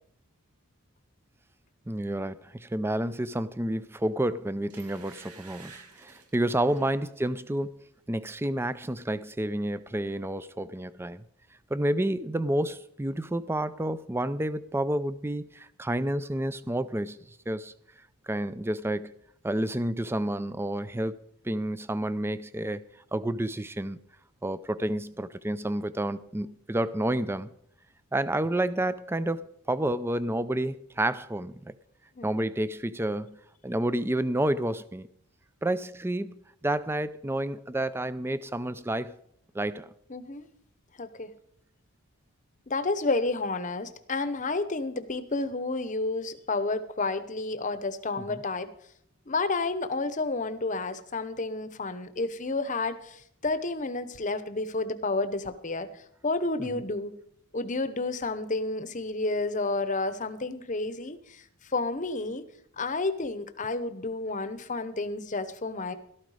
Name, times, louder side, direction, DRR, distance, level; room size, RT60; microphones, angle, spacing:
voice 1, 1.9-7.7 8.1-11.2 11.7-17.7 18.3-19.1 19.4-21.2 21.4-22.8 23.1-24.0 24.4-27.5 28.1-31.6 32.2-33.4 33.6-35.1 35.6-39.2 39.5-39.9 48.3-48.4 56.6-56.7, right 1 dB, 10° right, 0.4 m, -30 dB
sound 1, 4.0-4.2 4.7-7.0 7.5-7.7 8.0-8.8 9.0-9.1, right 5 dB, 90° right, 2.5 m, -52 dB
voice 2, 32.1-32.5 40.1-40.5 41.0-41.3 42.7-48.7 49.3-57.1 57.5-62.4 62.8-65.9, left 3 dB, 35° left, 0.9 m, -31 dB
13.0 x 13.0 x 4.9 m
head